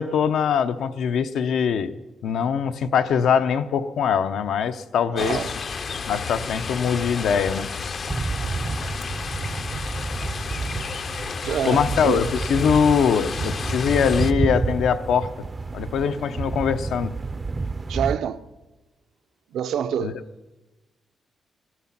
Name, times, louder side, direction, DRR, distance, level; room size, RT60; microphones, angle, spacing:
voice 1, 0.0-1.9 2.2-5.4 6.1-7.7 11.6-15.3 15.7-17.1 20.0-20.1, left 7 dB, 75° left, 0.7 m, -22 dB
voice 2, 5.1-5.5 8.4-8.5 10.2-10.4 11.4-12.3 17.9-18.4 19.5-20.2, right 9 dB, 80° right, 0.6 m, -27 dB
sound 1, 5.2-14.3, left 5 dB, 40° left, 0.5 m, -32 dB
sound 2, 8.1-18.2, right 3 dB, 20° right, 0.4 m, -29 dB
19.5 x 12.5 x 5.9 m
wide cardioid pair, 160°, 0 cm